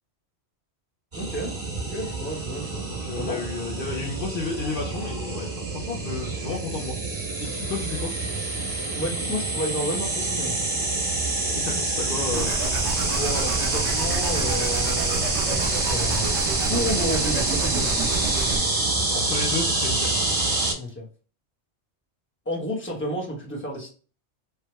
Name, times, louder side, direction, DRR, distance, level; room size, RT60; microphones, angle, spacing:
voice 1, 1.1-3.4 8.9-10.6 13.1-16.4 16.6-18.0 20.7-21.1 22.4-23.9, equal, 10° left, -3 dB, 0.9 m, -31 dB
sound 1, 1.1-20.7, right 2 dB, 45° right, 1.6 m, -27 dB
voice 2, 2.9-7.0 7.4-8.1 11.5-12.7 19.1-20.2, left 4 dB, 60° left, -1 dB, 0.7 m, -32 dB
sound 2, 12.3-18.6, right 4 dB, 90° right, 0.9 m, -30 dB
3.4 x 2.1 x 3.0 m, 0.38 s
omnidirectional pair, 1.1 m